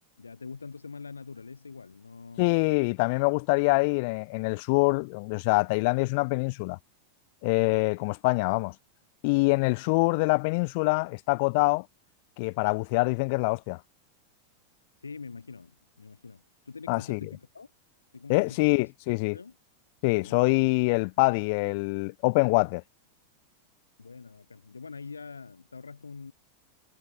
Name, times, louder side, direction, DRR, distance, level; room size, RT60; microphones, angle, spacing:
voice 1, 0.2-2.7 15.0-17.7 18.1-19.6 20.2-20.6 24.0-26.3, left 4 dB, 75° left, 1.7 m, -44 dB
voice 2, 2.4-6.8 7.4-8.7 9.2-11.9 12.4-13.8 16.9-17.3 18.3-19.4 20.0-22.8, left 29 dB, 45° left, 0.5 m, -25 dB
figure-of-eight pair, 90°, 0 cm